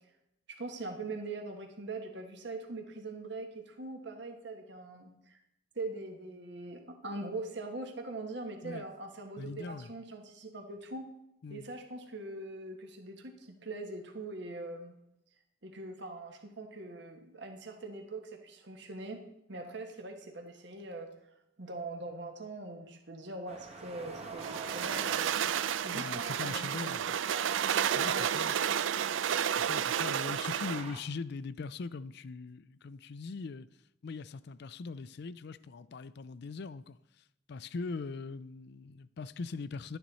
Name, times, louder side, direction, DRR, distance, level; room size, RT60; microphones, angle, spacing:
voice 1, 0.5-5.4 5.7-11.1 11.5-14.9 15.6-19.2 19.5-21.1 21.6-25.4 25.8-27.5 28.0-28.6, right 2 dB, 65° right, 1.4 m, -42 dB
voice 2, 9.4-9.9 11.4-11.7 25.9-27.2 27.9-28.6 29.6-33.7 34.0-40.0, left 4 dB, 60° left, 0.4 m, -41 dB
sound 1, 23.5-31.0, right 3 dB, 35° right, 1.2 m, -49 dB
sound 2, 24.4-30.9, right 9 dB, 85° right, 0.4 m, -31 dB
11.5 x 9.2 x 4.2 m
head